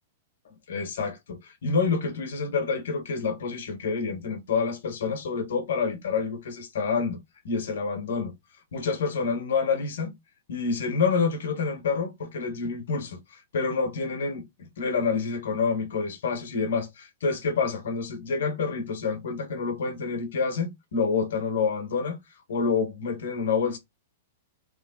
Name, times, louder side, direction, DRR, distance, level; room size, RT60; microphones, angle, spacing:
voice 1, 0.7-7.2 7.4-8.3 8.7-10.1 10.5-22.2 22.5-23.8, left 5 dB, 80° left, 1.6 m, -28 dB
3.6 x 3.4 x 3.9 m
hypercardioid pair, 135°, 0 cm